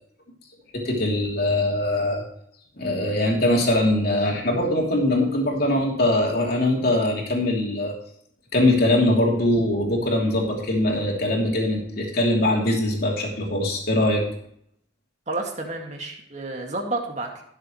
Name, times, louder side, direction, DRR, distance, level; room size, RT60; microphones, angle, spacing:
voice 1, 0.7-2.2 2.8-7.9 8.5-14.2, left 1 dB, 60° left, 0 dB, 3.1 m, -22 dB
voice 2, 15.3-17.4, right 2 dB, 40° right, 1 dB, 2.2 m, -30 dB
17.5 x 7.4 x 3.2 m, 0.68 s
head